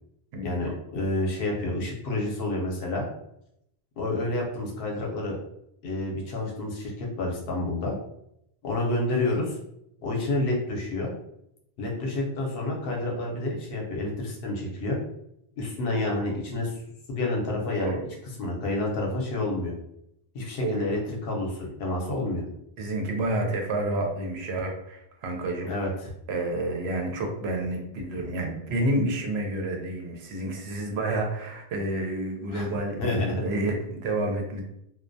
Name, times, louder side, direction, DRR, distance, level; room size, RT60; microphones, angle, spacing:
voice 1, 0.4-3.1 4.0-5.4 5.8-7.9 8.6-9.5 10.0-11.1 11.8-15.0 15.6-16.8 17.1-18.0 18.4-19.7 20.3-22.4 25.7-26.1 32.5-32.7 33.0-33.4, left 2 dB, 65° left, -1 dB, 0.8 m, -29 dB
voice 2, 22.8-25.7 26.3-34.6, right 1 dB, 80° right, 2 dB, 0.8 m, -29 dB
2.2 x 2.1 x 2.5 m, 0.78 s
omnidirectional pair, 1.1 m